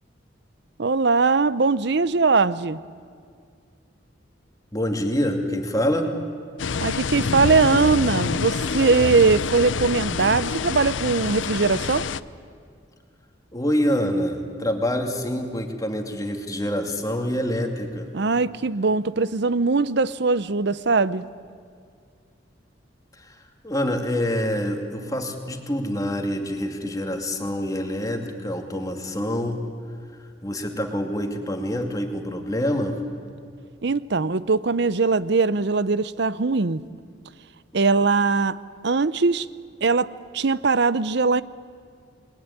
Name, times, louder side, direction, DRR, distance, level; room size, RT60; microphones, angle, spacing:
voice 1, 0.8-2.8 6.8-12.1 18.1-21.3 33.8-36.8 37.7-38.6 38.8-39.5 39.8-41.4, right 4 dB, 65° right, 17 dB, 0.7 m, -21 dB
voice 2, 4.7-6.1 13.5-18.1 23.2-23.4 23.6-29.6 30.4-33.0, equal, 20° left, 4 dB, 2.4 m, -26 dB
sound 1, 6.6-12.2, left 5 dB, 85° left, 0.7 m, -27 dB
28.0 x 20.5 x 9.8 m, 2.2 s
head